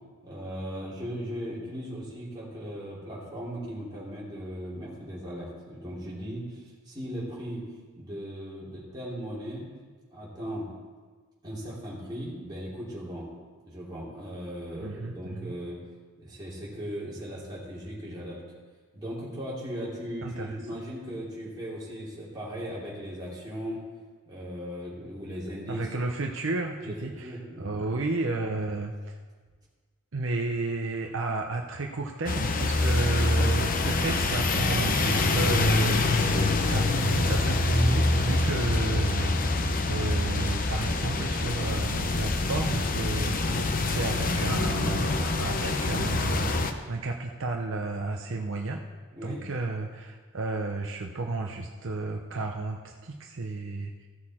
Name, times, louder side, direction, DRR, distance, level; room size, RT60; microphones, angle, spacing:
voice 1, 0.2-7.6 8.0-9.7 10.1-10.7 11.4-13.3 13.6-15.8 16.2-18.4 18.9-23.8 24.2-25.9 26.8-27.0 27.2-27.7 49.1-49.5, equal, 20° right, -7 dB, 3.0 m, -37 dB
voice 2, 14.8-15.6 20.2-20.6 25.7-29.2 30.1-46.5 46.9-48.8 49.2-54.1, right 3 dB, 65° right, 2 dB, 0.7 m, -32 dB
sound 1, 32.3-46.7, left 2 dB, 40° left, 0.7 m, -25 dB
15.5 x 6.4 x 4.3 m, 1.4 s
head